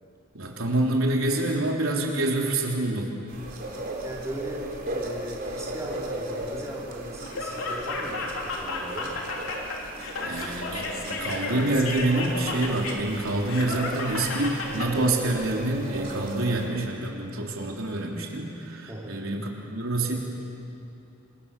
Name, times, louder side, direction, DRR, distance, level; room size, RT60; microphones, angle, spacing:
voice 1, 0.3-3.1 10.2-20.2, right 2 dB, 85° right, 0 dB, 3.5 m, -27 dB
sound 1, 3.3-16.7, right 1 dB, 45° right, 3.8 m, -37 dB
voice 2, 4.0-9.2 18.9-19.2, right 1 dB, 15° right, -4 dB, 4.3 m, -38 dB
Laughter, 7.2-14.9, left 3 dB, 75° left, 3.7 m, -33 dB
28.0 x 26.0 x 6.9 m, 2.8 s
head